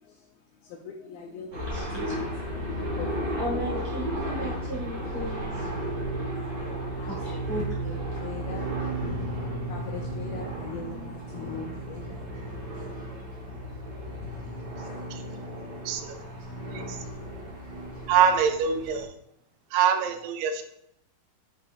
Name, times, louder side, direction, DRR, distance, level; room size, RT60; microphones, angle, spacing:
voice 1, 0.8-3.4 7.0-7.1 7.5-7.6 8.2-8.7 9.0-12.2 14.1-14.7, left 6 dB, 80° left, 0 dB, 2.1 m, -39 dB
sound 1, 1.5-19.0, right 1 dB, 50° right, 1.6 m, -34 dB
voice 2, 1.6-2.2 3.4-5.7 7.1-8.1, right 1 dB, 20° right, -8 dB, 1.7 m, -35 dB
voice 3, 18.1-19.1 19.7-20.6, right 7 dB, 85° right, 7 dB, 2.8 m, -24 dB
9.8 x 5.6 x 2.5 m, 0.74 s
omnidirectional pair, 4.6 m